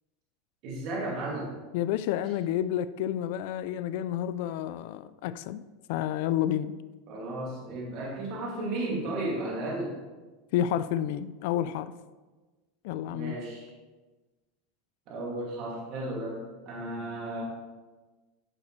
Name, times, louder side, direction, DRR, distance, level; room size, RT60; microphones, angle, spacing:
voice 1, 0.6-1.5 7.1-10.0 13.1-13.7 15.1-17.4, right 2 dB, 50° right, 2.4 m, -34 dB
voice 2, 1.7-5.6 5.9-6.7 10.5-11.9 12.8-13.4, left 11 dB, 65° left, 0.3 m, -30 dB
9.8 x 6.6 x 3.2 m
supercardioid pair, 135°, 0 cm